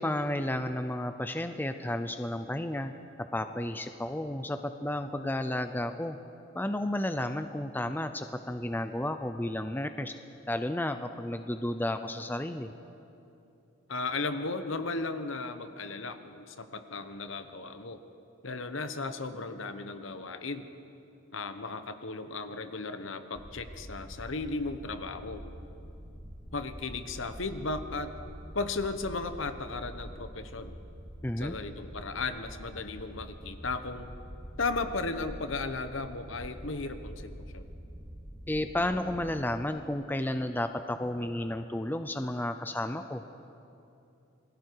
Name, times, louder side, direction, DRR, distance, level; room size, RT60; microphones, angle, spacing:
voice 1, 0.0-2.9 3.3-6.2 6.5-10.1 10.5-12.7 31.2-31.5 38.5-43.2, left 1 dB, 10° left, 8 dB, 0.5 m, -32 dB
voice 2, 13.9-18.0 18.4-20.7 21.3-25.4 26.5-28.1 28.5-30.8 31.4-34.1 34.6-37.6, left 3 dB, 70° left, 9 dB, 1.1 m, -35 dB
sound 1, 23.3-39.3, equal, 15° right, 2.1 m, -45 dB
28.0 x 21.0 x 4.7 m, 2.8 s
head